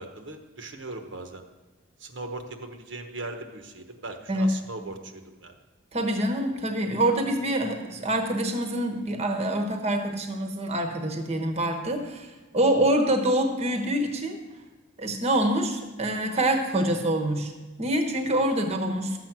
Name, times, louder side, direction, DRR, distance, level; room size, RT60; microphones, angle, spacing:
voice 1, 0.0-1.4 2.0-5.5, right 2 dB, 65° right, 5 dB, 1.1 m, -39 dB
voice 2, 5.9-14.4 15.0-17.5 17.8-19.2, right 1 dB, 30° right, 4 dB, 1.0 m, -26 dB
12.5 x 7.8 x 5.9 m, 1.2 s
head